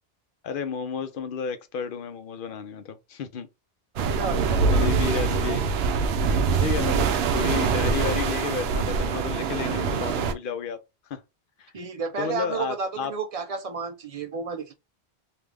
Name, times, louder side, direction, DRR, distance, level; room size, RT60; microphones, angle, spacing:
voice 1, 0.4-3.5 4.7-5.6 6.6-10.8 11.1-11.2 11.6-11.7 12.2-13.1, left 6 dB, 65° left, 0.7 m, -32 dB
voice 2, 3.9-5.6 11.7-14.7, right 5 dB, 45° right, 0.5 m, -32 dB
sound 1, 4.0-10.3, right 5 dB, 75° right, 0.8 m, -24 dB
3.4 x 2.4 x 3.3 m
omnidirectional pair, 1.1 m